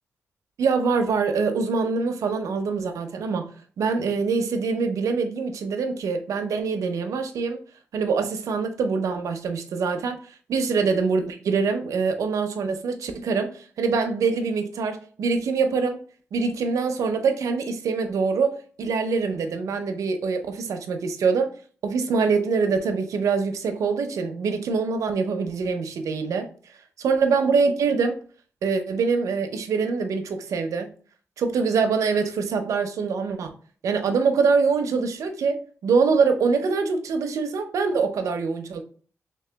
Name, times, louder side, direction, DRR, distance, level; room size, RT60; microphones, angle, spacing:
voice 1, 0.6-7.6 7.9-10.2 10.5-16.0 16.3-21.5 21.8-26.5 27.0-28.2 28.6-30.9 31.4-33.5 33.8-38.8, right 5 dB, 90° right, 0.5 m, -24 dB
3.2 x 2.9 x 3.3 m
wide cardioid pair, 115°, 5 cm